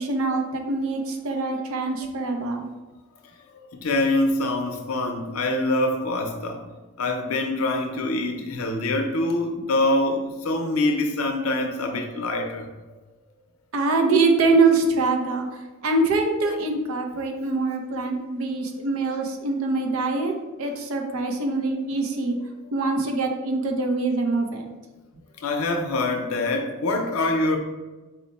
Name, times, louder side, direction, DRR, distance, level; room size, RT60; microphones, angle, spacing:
voice 1, 0.0-2.7 13.7-15.5 15.8-20.3 20.6-22.4 22.7-24.7, right 3 dB, 75° right, 3 dB, 0.6 m, -24 dB
voice 2, 3.5-6.6 7.0-12.7 19.0-19.1 25.4-27.6, left 2 dB, 75° left, 4 dB, 0.6 m, -25 dB
4.3 x 2.1 x 4.1 m, 1.2 s
head